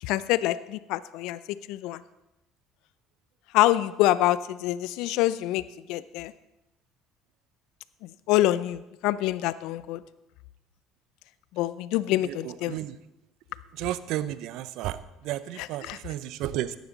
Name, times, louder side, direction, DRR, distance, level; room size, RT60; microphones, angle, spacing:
voice 1, 0.0-2.0 3.5-5.6 5.9-6.3 8.0-10.0 11.5-12.8 15.6-16.0, left 15 dB, 70° left, 17 dB, 0.5 m, -26 dB
voice 2, 12.2-13.0 13.7-16.7, right 13 dB, 65° right, 15 dB, 0.6 m, -33 dB
15.5 x 10.5 x 4.1 m, 0.95 s
hypercardioid pair, 65°, 0 cm